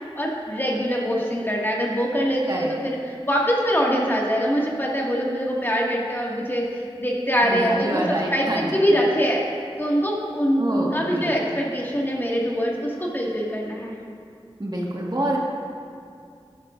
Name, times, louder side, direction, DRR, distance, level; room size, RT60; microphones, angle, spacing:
voice 1, 0.2-3.0 3.2-9.4 9.8-13.9, equal, 20° left, -4 dB, 2.1 m, -23 dB
voice 2, 7.4-8.8 10.6-11.3 14.6-15.4, right 1 dB, 45° right, -3 dB, 1.8 m, -27 dB
15.0 x 11.5 x 2.6 m, 2.3 s
wide cardioid pair, 40°, 10 cm